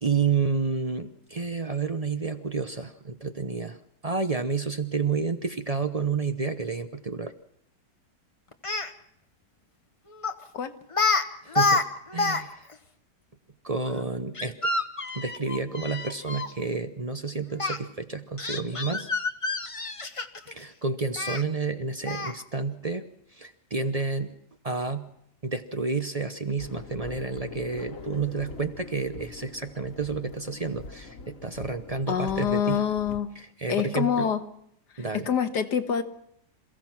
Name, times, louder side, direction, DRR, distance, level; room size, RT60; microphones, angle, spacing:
voice 1, 0.0-3.8 4.0-7.3 11.4-11.8 12.1-12.7 13.6-14.7 15.1-19.1 20.5-23.0 23.3-24.3 24.6-25.1 25.4-32.8 33.6-34.3 35.0-35.3, right 4 dB, 35° right, 9 dB, 0.6 m, -30 dB
Speech, 8.5-8.9 10.2-10.4 10.9-11.2 11.5-12.4 12.7-12.8 14.3-16.5 17.6-17.8 18.4-20.5 21.2-21.4 22.1-22.4, left 3 dB, 25° left, 0.8 m, -27 dB
sound 1, 26.6-33.2, left 4 dB, 50° left, 1.9 m, -43 dB
voice 2, 32.1-33.3 33.7-34.4 34.9-36.0, left 8 dB, 75° left, 8 dB, 1.9 m, -26 dB
27.5 x 16.0 x 6.0 m, 0.74 s
omnidirectional pair, 1.8 m